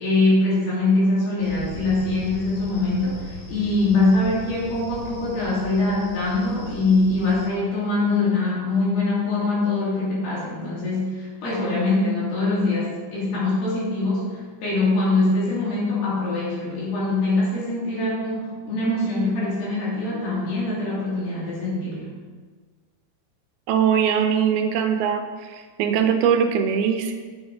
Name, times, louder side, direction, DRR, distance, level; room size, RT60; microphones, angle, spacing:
voice 1, 0.0-22.1, left 2 dB, 80° left, -8 dB, 5.0 m, -23 dB
sound 1, 1.4-7.5, equal, 60° left, 2.9 m, -39 dB
voice 2, 23.7-25.2 25.5-27.2, right 7 dB, 80° right, 6 dB, 2.5 m, -21 dB
7.6 x 7.2 x 5.0 m, 1.5 s
omnidirectional pair, 4.5 m